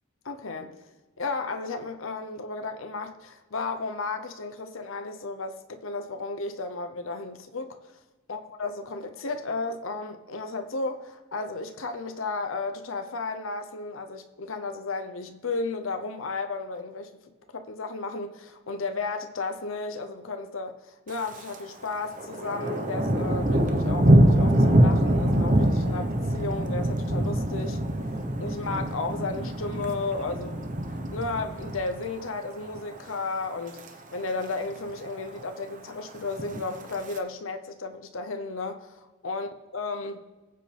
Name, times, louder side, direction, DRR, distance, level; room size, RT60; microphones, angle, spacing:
voice 1, 0.2-0.7 1.2-7.8 8.3-17.1 17.5-27.8 28.4-33.8 34.1-40.3, left 3 dB, 80° left, 0.8 m, -34 dB
Thunder, 21.1-21.6 21.9-32.3 32.6-33.0 33.4-33.9 34.2-34.3 34.4-34.5 34.9-35.5 36.2-37.2, right 1 dB, 40° right, 1.0 m, -24 dB
20.5 x 7.7 x 3.4 m
head